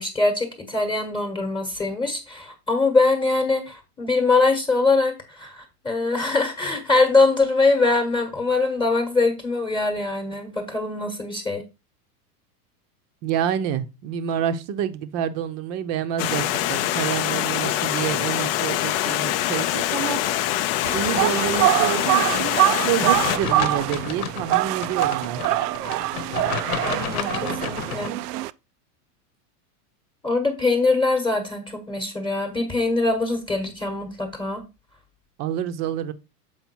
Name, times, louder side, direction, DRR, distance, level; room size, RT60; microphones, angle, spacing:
voice 1, 0.0-11.6 26.8-28.2 30.2-34.6, left 3 dB, 10° left, 1.2 m, -23 dB
voice 2, 13.2-20.2 20.9-22.6 22.8-25.4 35.4-36.1, right 9 dB, 35° right, 0.7 m, -28 dB
Stream, 16.2-23.4, left 13 dB, 40° left, 0.5 m, -24 dB
sound 1, 20.8-28.5, right 16 dB, 80° right, 0.6 m, -24 dB
sound 2, 23.1-28.1, left 9 dB, 70° left, 1.1 m, -31 dB
7.2 x 4.8 x 4.5 m
supercardioid pair, 145°, 46 cm